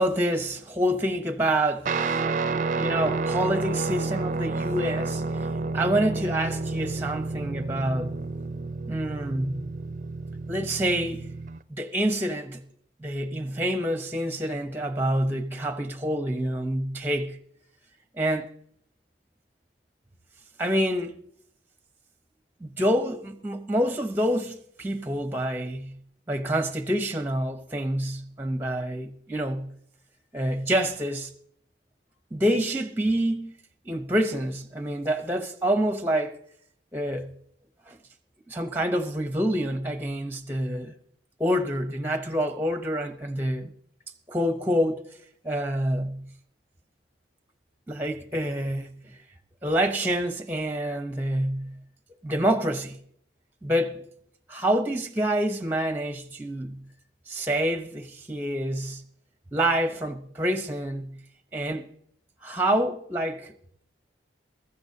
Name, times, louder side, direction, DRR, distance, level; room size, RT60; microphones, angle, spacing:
voice 1, 0.0-2.2 2.8-5.5 5.7-8.2 8.9-9.7 10.5-11.3 11.8-12.6 13.0-17.4 18.2-18.5 20.6-21.2 22.6-26.0 26.3-29.7 30.3-31.3 32.3-33.5 33.8-36.4 36.9-37.3 37.9-38.0 38.5-40.9 41.4-43.7 44.3-45.0 45.4-46.3 47.9-49.2 49.6-51.8 52.2-53.0 53.6-54.0 54.5-56.8 57.3-59.0 59.5-61.2 61.5-61.9 62.4-63.5, right 1 dB, 10° right, 0.7 m, -27 dB
Guitar, 1.9-11.6, right 3 dB, 40° right, 0.4 m, -30 dB
22.0 x 14.0 x 2.8 m
head